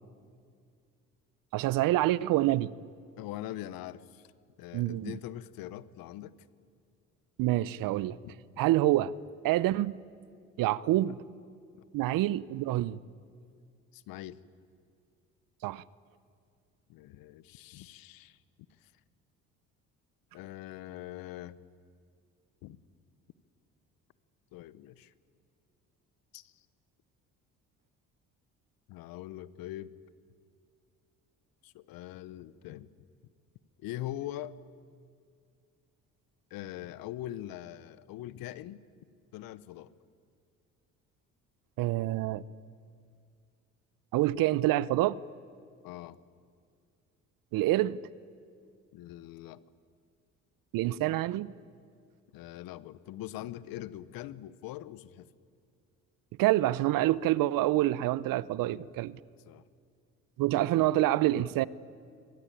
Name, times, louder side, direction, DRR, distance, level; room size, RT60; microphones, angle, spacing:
voice 1, 1.5-2.7 4.7-5.2 7.4-8.2 8.6-9.1 9.4-10.0 10.6-11.2 11.9-13.0 15.6-15.8 41.8-42.4 44.1-45.2 47.5-48.0 50.7-51.5 56.4-59.2 60.4-61.7, right 15 dB, 65° right, 0.8 m, -27 dB
voice 2, 3.2-4.3 4.6-6.4 8.2-8.3 11.7-11.8 13.9-14.4 16.9-18.4 18.8-18.9 20.3-21.6 22.6-22.8 24.5-25.1 26.3-26.6 28.9-29.9 31.6-32.9 33.8-34.6 36.5-38.8 39.3-39.9 45.8-46.2 48.9-49.6 52.3-55.3 58.6-58.9 59.5-59.6, left 14 dB, 70° left, 1.0 m, -42 dB
25.0 x 19.0 x 9.0 m
hypercardioid pair, 60°, 36 cm